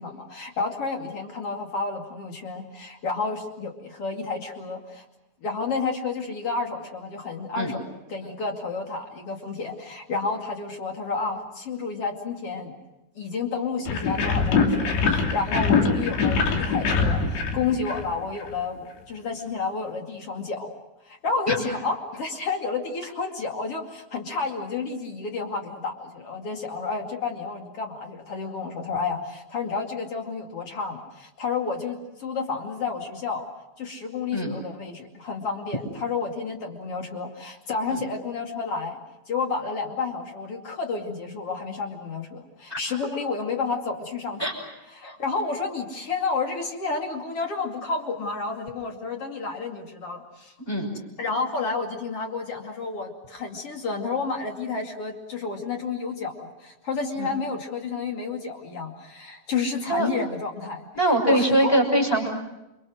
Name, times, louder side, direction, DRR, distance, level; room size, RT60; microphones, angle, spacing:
voice 1, 0.0-5.0 5.4-12.8 13.1-20.7 21.0-33.5 33.8-39.0 39.3-44.5 44.9-50.5 51.2-60.8 61.3-61.8, left 4 dB, 40° left, 3 dB, 2.8 m, -30 dB
sound 1, 13.9-18.5, left 4 dB, 70° left, 4.9 m, -23 dB
voice 2, 60.9-62.3, right 1 dB, 5° left, 2 dB, 5.6 m, -22 dB
29.0 x 25.0 x 6.4 m, 0.95 s
omnidirectional pair, 5.2 m